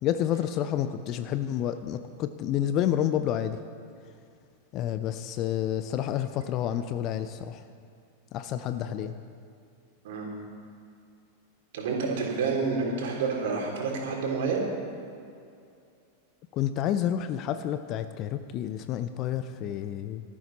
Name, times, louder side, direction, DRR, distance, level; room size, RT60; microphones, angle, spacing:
voice 1, 0.0-3.6 4.7-7.6 8.3-9.1 16.5-20.2, left 10 dB, 35° left, 11 dB, 0.6 m, -29 dB
voice 2, 11.7-14.6, right 4 dB, 55° right, -1 dB, 3.5 m, -29 dB
18.0 x 13.5 x 4.2 m, 2.5 s
figure-of-eight pair, 90°, 0 cm